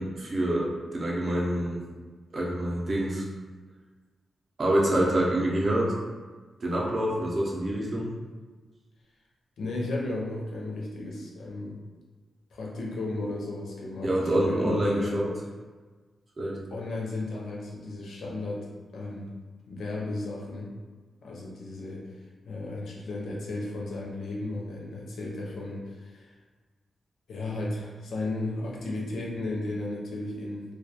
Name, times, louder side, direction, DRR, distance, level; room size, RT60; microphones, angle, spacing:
voice 1, 0.0-1.8 2.3-3.3 4.6-5.9 6.6-8.1 14.0-15.3 16.4-16.6, right 1 dB, 40° right, -3 dB, 0.5 m, -26 dB
voice 2, 9.6-11.8 12.5-15.2 16.7-18.7 18.9-19.3 19.7-20.7 21.2-22.0 22.5-26.3 27.3-30.6, left 2 dB, 75° left, -3 dB, 0.5 m, -34 dB
2.2 x 2.2 x 2.8 m, 1.4 s
wide cardioid pair, 135°, 0 cm